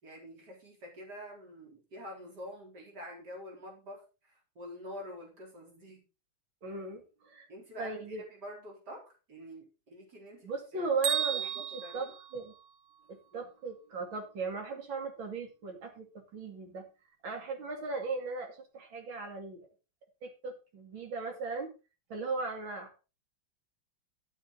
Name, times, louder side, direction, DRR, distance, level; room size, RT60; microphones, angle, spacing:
voice 1, 0.0-6.0 7.5-10.9 11.3-12.1 13.3-13.5, equal, 50° right, -1 dB, 4.6 m, -47 dB
voice 2, 6.6-7.5 7.8-8.2 10.4-12.5 13.1-16.9 17.2-19.7 20.2-21.7 22.1-23.0, right 3 dB, 70° right, 3 dB, 3.2 m, -37 dB
Bell, 11.0-13.1, right 9 dB, 90° right, 2.8 m, -34 dB
11.5 x 9.1 x 4.1 m, 0.31 s
omnidirectional pair, 2.3 m